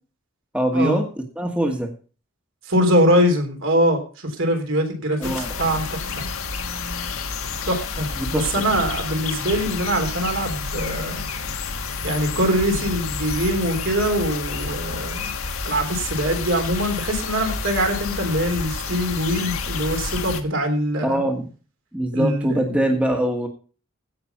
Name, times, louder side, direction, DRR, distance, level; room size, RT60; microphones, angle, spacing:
voice 1, 0.5-1.0 1.3-1.9 5.2-5.6 8.2-8.5 21.0-21.5 21.9-23.5, right 1 dB, 5° right, 2 dB, 1.4 m, -23 dB
voice 2, 2.7-6.2 7.7-11.2 12.0-15.3 15.6-21.3 22.1-23.0, equal, 65° right, 4 dB, 3.6 m, -23 dB
sound 1, 5.2-20.4, left 4 dB, 80° left, 1.6 m, -29 dB
16.0 x 6.0 x 5.7 m, 0.38 s
head